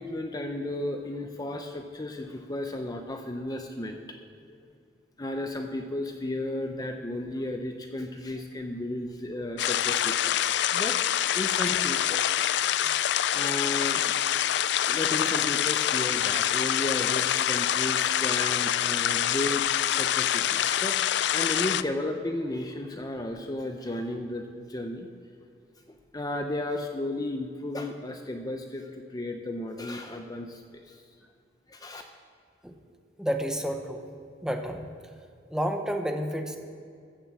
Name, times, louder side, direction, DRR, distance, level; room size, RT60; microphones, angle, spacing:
voice 1, 0.0-4.6 5.2-11.0 11.3-12.6 13.1-14.5 14.9-21.0 21.3-25.1 25.9-31.0 31.7-32.0, left 1 dB, 20° left, 5 dB, 0.7 m, -34 dB
sound 1, 9.6-21.8, left 11 dB, 65° left, 0.4 m, -26 dB
voice 2, 33.2-34.1 34.4-34.9 35.5-36.6, equal, 5° right, 5 dB, 0.9 m, -30 dB
14.5 x 7.5 x 7.3 m, 2.4 s
head